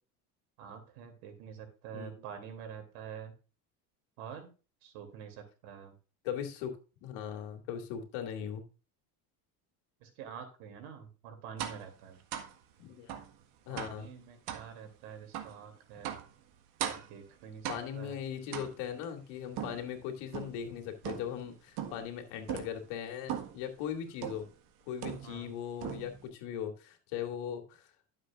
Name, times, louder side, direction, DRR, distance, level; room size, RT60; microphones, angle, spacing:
voice 1, 0.6-3.3 4.2-4.5 4.8-6.0 10.0-12.2 13.7-16.2 16.8-18.1 25.2-25.6, right 7 dB, 85° right, 5 dB, 3.0 m, -47 dB
voice 2, 6.2-8.6 12.8-13.1 13.7-14.1 17.7-24.4 24.9-27.8, left 9 dB, 75° left, 4 dB, 2.5 m, -39 dB
sound 1, 11.6-11.9 12.3-12.6 13.1-13.3 13.8-14.0 14.5-14.7 15.3-15.6 16.0-16.3 16.8-17.2 17.6-18.1 18.5-19.0 19.6-20.6 21.0-21.4 21.8-22.1 22.5-22.8 23.3-23.6 24.2-24.5 25.0-25.5 25.8-26.3, right 10 dB, 65° right, 1.8 m, -39 dB
12.0 x 7.5 x 2.5 m, 0.33 s
supercardioid pair, 120°, 42 cm